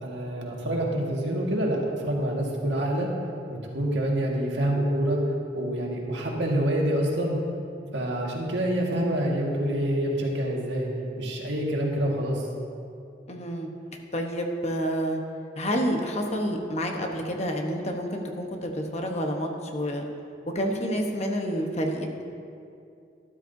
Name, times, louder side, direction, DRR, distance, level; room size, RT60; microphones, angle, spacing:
voice 1, 0.0-3.1 3.5-5.2 5.5-7.4 7.9-10.9 11.2-12.5, right 1 dB, 80° right, -2 dB, 1.8 m, -27 dB
voice 2, 13.3-13.7 14.1-15.2 15.6-20.0 20.5-22.2, equal, 35° left, 2 dB, 1.1 m, -29 dB
12.5 x 12.5 x 2.7 m, 2.4 s
head